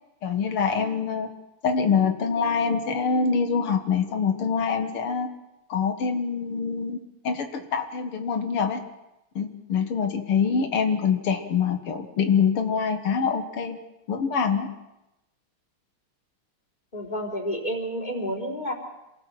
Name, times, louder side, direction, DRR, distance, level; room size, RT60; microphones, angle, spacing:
voice 1, 0.2-1.3 1.6-5.3 5.7-7.0 7.2-8.8 9.4-13.8 14.1-14.7, left 6 dB, 90° left, 6 dB, 2.6 m, -25 dB
voice 2, 16.9-18.7, equal, 20° left, 1 dB, 4.0 m, -30 dB
27.5 x 18.5 x 7.7 m, 0.92 s
omnidirectional pair, 2.4 m